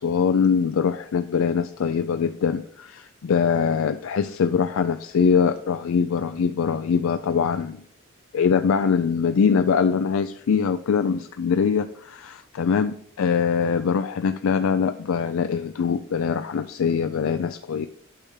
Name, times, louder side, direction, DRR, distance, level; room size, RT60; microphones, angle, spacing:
voice 1, 0.0-7.8 8.3-17.9, left 6 dB, 75° left, 9 dB, 0.4 m, -23 dB
8.6 x 3.5 x 6.4 m, 0.64 s
head